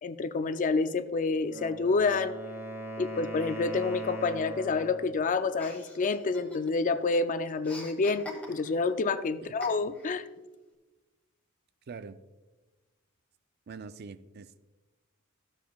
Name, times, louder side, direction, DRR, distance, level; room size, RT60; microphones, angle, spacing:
voice 1, 0.0-2.4 3.0-10.2, left 4 dB, 40° left, 11 dB, 0.4 m, -28 dB
Wind instrument woodwind instrument, 1.4-5.2, right 1 dB, 10° right, 1.6 m, -39 dB
Chuckle chortle, 5.6-7.0 7.2-8.9 9.6-10.2, left 2 dB, 5° left, 1.2 m, -44 dB
voice 2, 11.9-12.2 13.7-14.6, right 5 dB, 50° right, 13 dB, 0.4 m, -43 dB
13.5 x 7.3 x 2.3 m, 1.2 s
head